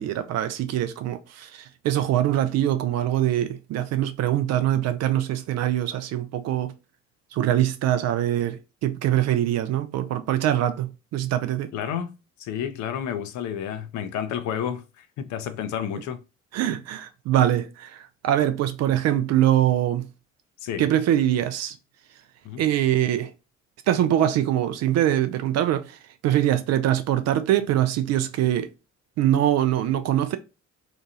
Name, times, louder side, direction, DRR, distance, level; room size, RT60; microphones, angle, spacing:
voice 1, 0.0-6.7 7.3-11.7 16.5-20.1 20.8-21.7 22.6-23.3 23.9-26.0 26.2-28.7 29.2-30.4, right 12 dB, 40° right, 0.4 m, -23 dB
voice 2, 11.7-16.2 20.6-20.9 22.4-22.6, left 9 dB, 45° left, 0.5 m, -31 dB
2.8 x 2.3 x 2.6 m
figure-of-eight pair, 45°, 40 cm